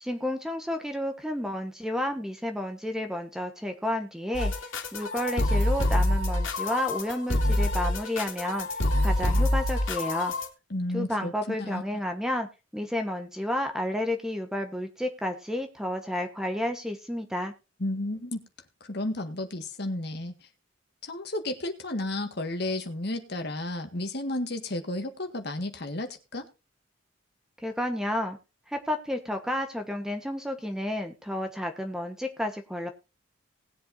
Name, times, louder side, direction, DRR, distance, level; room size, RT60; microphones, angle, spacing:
voice 1, 0.0-4.5 4.9-8.7 9.0-10.3 10.9-17.5 27.6-28.4 28.7-32.9, left 1 dB, 5° right, 5 dB, 1.2 m, -31 dB
sound 1, 4.3-10.5, left 1 dB, 75° left, 2.5 m, -26 dB
voice 2, 10.7-11.8 17.8-18.4 18.9-20.3 21.0-26.5, left 1 dB, 55° left, 6 dB, 1.8 m, -32 dB
19.5 x 7.7 x 2.7 m, 0.30 s
head